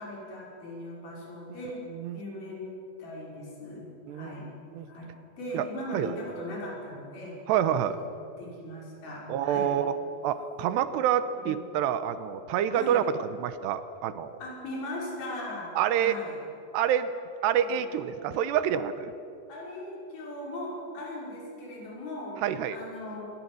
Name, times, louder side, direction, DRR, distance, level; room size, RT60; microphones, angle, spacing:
voice 1, 0.0-1.8 2.1-4.5 4.9-5.1 5.4-7.4 7.9-8.1 8.4-9.8 11.3-11.6 12.7-13.0 14.4-16.4 17.5-17.8 19.5-22.4 22.7-23.3, left 1 dB, 55° left, -3 dB, 7.7 m, -39 dB
voice 2, 7.5-8.0 9.3-9.9 10.2-13.0 13.4-14.3 15.8-16.2 16.7-17.1 17.4-19.1 22.4-22.8, right 10 dB, 80° right, 12 dB, 3.0 m, -27 dB
25.5 x 22.0 x 7.9 m, 2.6 s
omnidirectional pair, 5.0 m